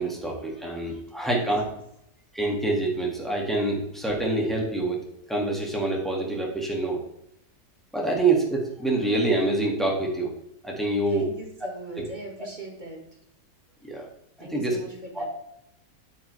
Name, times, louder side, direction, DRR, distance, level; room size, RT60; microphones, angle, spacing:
voice 1, 0.0-1.6 2.3-5.0 5.3-7.0 7.9-10.3 10.6-11.3 12.0-12.1 13.8-14.1 14.4-14.8 15.1-15.3, right 2 dB, ahead, -2 dB, 2.0 m, -26 dB
voice 2, 1.2-1.8 11.0-13.0 14.4-15.3, right 2 dB, 25° right, 0 dB, 1.8 m, -41 dB
8.6 x 7.8 x 3.4 m, 0.79 s
omnidirectional pair, 1.9 m